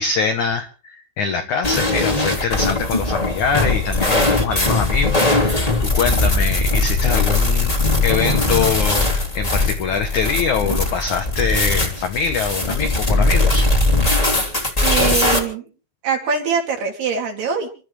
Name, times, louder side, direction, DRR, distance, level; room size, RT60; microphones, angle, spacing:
voice 1, 0.0-7.8 8.0-13.7, left 5 dB, 80° left, 7 dB, 1.7 m, -23 dB
sound 1, 1.6-15.4, left 2 dB, 10° left, 2.0 m, -19 dB
voice 2, 14.8-15.7 16.0-17.7, right 6 dB, 65° right, 2 dB, 4.9 m, -23 dB
29.0 x 13.0 x 3.3 m, 0.36 s
omnidirectional pair, 5.2 m